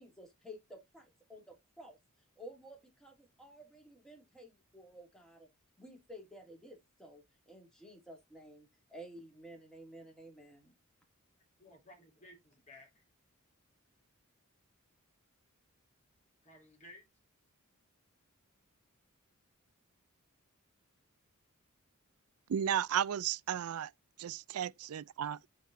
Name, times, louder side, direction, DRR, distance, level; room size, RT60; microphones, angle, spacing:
voice 1, 0.0-2.0 2.4-5.5 5.8-10.7, equal, 5° left, 2.6 m, -53 dB
voice 2, 11.6-13.0 16.4-17.1, left 1 dB, 35° left, 3.1 m, -57 dB
voice 3, 22.5-23.9 24.2-25.4, right 9 dB, 75° right, 0.4 m, -34 dB
9.1 x 4.2 x 4.0 m
head